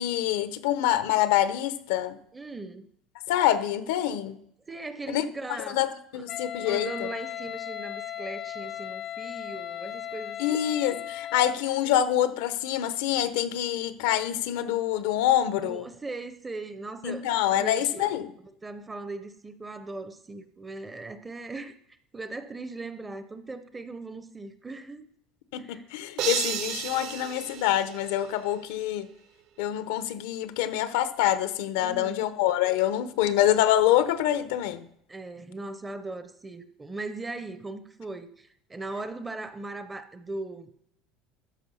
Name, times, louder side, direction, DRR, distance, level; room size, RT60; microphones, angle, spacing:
voice 1, 0.0-2.2 3.3-4.4 5.1-5.2 5.5-6.9 10.4-15.9 17.0-18.3 25.5-29.1 29.6-34.9, left 12 dB, 85° left, 0.8 m, -26 dB
voice 2, 2.3-2.9 4.7-5.8 6.1-6.3 6.7-10.6 15.5-17.3 17.6-18.1 18.4-21.7 22.1-25.1 25.6-25.9 31.8-32.3 35.1-40.7, right 2 dB, 10° right, 0.6 m, -39 dB
Wind instrument woodwind instrument, 6.3-11.6, left 11 dB, 35° left, 0.4 m, -37 dB
sound 1, 26.2-28.5, right 9 dB, 55° right, 0.8 m, -33 dB
13.0 x 5.1 x 5.5 m
cardioid pair, 155°, 0 cm